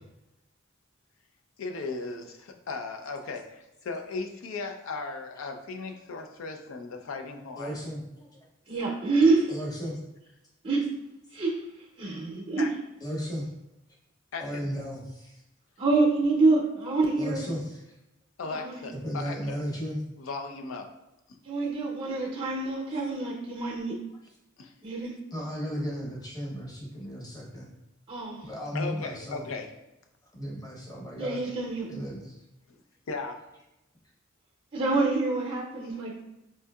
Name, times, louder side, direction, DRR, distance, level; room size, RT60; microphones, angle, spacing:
voice 1, 1.6-7.8 12.6-12.7 14.3-14.6 18.4-19.6 20.2-20.9 21.3-21.4 24.6-24.7 28.7-29.7 32.7-32.8 33.1-33.4 35.9-36.0, left 3 dB, 75° left, 5 dB, 0.4 m, -37 dB
voice 2, 7.6-8.3 9.5-10.0 13.0-13.5 14.4-15.4 17.2-17.9 18.9-20.0 25.3-27.7 28.4-29.4 30.3-31.4 31.9-32.4, equal, 20° left, -4 dB, 0.8 m, -35 dB
voice 3, 8.7-9.5 10.6-10.8 11.3-11.5 12.0-12.6 15.8-17.4 18.4-18.8 21.4-24.0 24.8-25.1 28.1-28.5 31.2-31.9 34.7-36.1, right 3 dB, 30° right, -3 dB, 0.6 m, -26 dB
4.4 x 2.7 x 2.3 m, 0.91 s
head